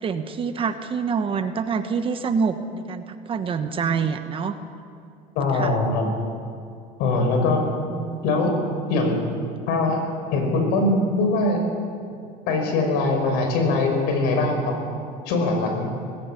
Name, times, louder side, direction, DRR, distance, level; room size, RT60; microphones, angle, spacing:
voice 1, 0.0-4.6 5.5-5.7 7.9-8.2, right 5 dB, 30° right, 9 dB, 1.2 m, -26 dB
voice 2, 5.4-6.1 7.0-7.6 8.2-8.6 8.9-9.2 9.7-10.0 10.3-11.6 12.5-14.8 15.3-15.9, left 2 dB, 70° left, 4 dB, 5.4 m, -22 dB
19.0 x 16.5 x 8.4 m, 2.5 s
cardioid pair, 130°, 17 cm